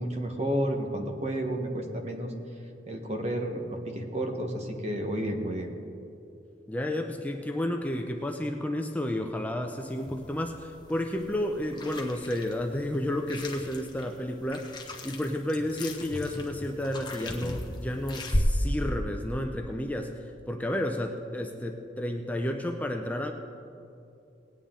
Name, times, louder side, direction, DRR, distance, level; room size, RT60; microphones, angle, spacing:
voice 1, 0.0-2.3 2.9-5.7, right 1 dB, 40° right, 4 dB, 1.2 m, -31 dB
voice 2, 6.7-14.8 15.0-23.3, left 1 dB, 10° left, 3 dB, 0.5 m, -31 dB
sound 1, 9.8-18.4, left 1 dB, 25° left, 1.1 m, -37 dB
19.0 x 9.1 x 3.8 m, 2.6 s
head